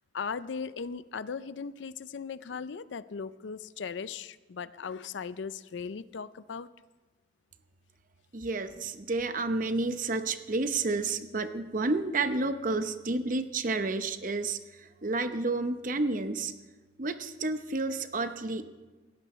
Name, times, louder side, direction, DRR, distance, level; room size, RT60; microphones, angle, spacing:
voice 1, 0.1-6.7, left 5 dB, 85° left, 16 dB, 0.5 m, -38 dB
voice 2, 8.3-16.5 17.0-18.6, right 3 dB, 45° right, 9 dB, 0.8 m, -30 dB
18.0 x 16.0 x 3.2 m, 1.2 s
head